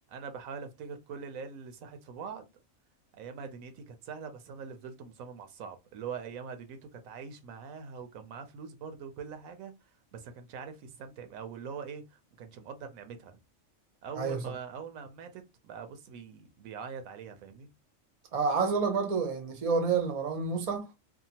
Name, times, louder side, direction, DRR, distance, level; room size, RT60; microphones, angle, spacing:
voice 1, 0.0-2.4 3.1-9.7 10.1-13.4 14.0-17.7, right 6 dB, 85° right, 1.0 m, -43 dB
voice 2, 18.3-20.9, right 5 dB, 45° right, 0.5 m, -29 dB
2.8 x 2.2 x 2.7 m
omnidirectional pair, 1.4 m